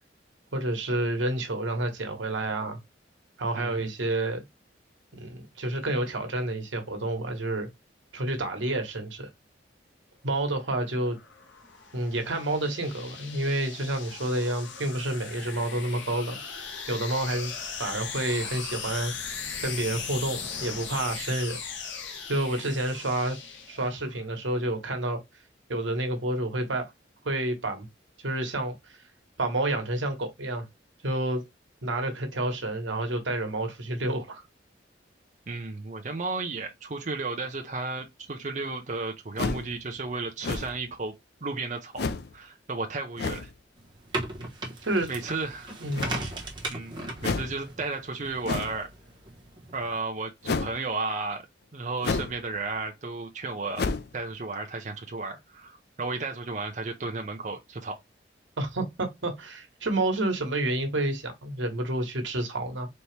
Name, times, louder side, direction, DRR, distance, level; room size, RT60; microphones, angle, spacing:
voice 1, 0.5-2.8 3.4-4.4 5.1-7.7 8.1-9.3 10.2-11.2 11.9-19.1 19.6-21.6 22.3-23.4 23.7-25.2 25.7-26.9 27.2-27.9 28.2-29.0 29.4-30.7 31.0-31.4 31.8-34.4 44.9-45.1 45.8-46.2 58.6-62.9, right 1 dB, 85° right, 1.3 m, -29 dB
voice 2, 3.5-3.9 35.5-41.1 41.4-42.0 42.3-43.5 45.1-45.7 46.7-48.9 49.7-51.5 51.7-53.8 54.1-57.9, right 3 dB, 40° right, 0.6 m, -33 dB
sound 1, 10.8-24.2, left 6 dB, 80° left, 1.0 m, -38 dB
sound 2, 39.4-39.7 40.4-40.9 42.0-42.3 43.2-43.5 45.9-46.4 47.2-47.6 48.4-48.8 50.4-50.8 52.0-52.4 52.7-52.8 53.8-54.1, left 4 dB, 60° left, 0.4 m, -30 dB
sound 3, 43.8-50.0, right 2 dB, 25° right, 1.1 m, -38 dB
4.2 x 2.9 x 3.3 m
head